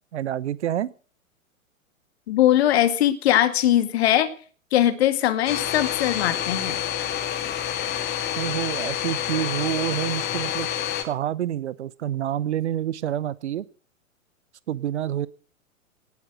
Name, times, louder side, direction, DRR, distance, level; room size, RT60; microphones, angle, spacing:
voice 1, 0.1-0.9 8.4-10.7 11.0-13.7 14.7-15.3, right 11 dB, 55° right, 21 dB, 0.9 m, -27 dB
voice 2, 2.3-4.3 4.7-6.8, left 12 dB, 50° left, 11 dB, 2.3 m, -20 dB
Domestic sounds home sounds, 5.5-11.0, left 10 dB, 25° left, 2.5 m, -28 dB
18.5 x 8.7 x 7.7 m, 0.41 s
figure-of-eight pair, 105°, 40 cm